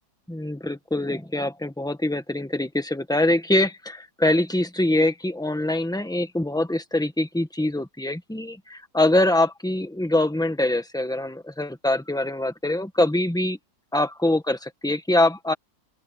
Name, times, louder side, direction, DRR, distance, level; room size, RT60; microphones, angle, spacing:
voice 1, 0.3-13.6 13.9-15.5, left 1 dB, ahead, 1.4 m, -24 dB
open air
omnidirectional pair, 1.8 m